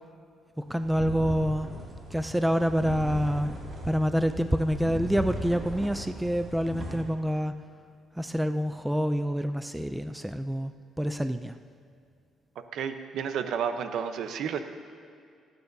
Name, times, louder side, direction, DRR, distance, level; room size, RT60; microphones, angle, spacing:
voice 1, 0.6-1.7 2.1-3.5 3.8-7.6 8.2-10.7 11.0-11.6, equal, 5° right, 9 dB, 0.3 m, -27 dB
sound 1, 0.7-7.0, right 1 dB, 30° right, 2.3 m, -38 dB
voice 2, 12.7-14.6, right 7 dB, 65° right, 8 dB, 0.8 m, -31 dB
27.0 x 9.2 x 2.7 m, 2.3 s
cardioid pair, 150°, 0 cm